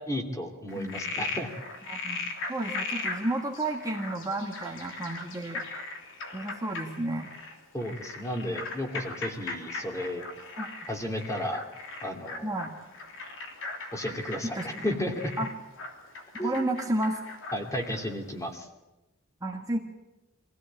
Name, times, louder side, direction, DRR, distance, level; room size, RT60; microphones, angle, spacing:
voice 1, 0.1-1.5 7.7-10.2 10.9-11.6 12.0-12.5 13.9-15.3 16.4-16.5 17.5-18.7, equal, 15° left, 3 dB, 2.7 m, -33 dB
Frog, 0.7-18.1, left 3 dB, 60° left, 3.2 m, -38 dB
voice 2, 0.8-1.1 1.8-5.6 6.3-7.3 10.6-10.7 12.4-12.7 14.4-14.8 15.4-15.5 16.4-17.2 19.4-19.8, right 1 dB, 15° right, 1 dB, 1.7 m, -32 dB
24.5 x 16.0 x 8.8 m, 1.0 s
head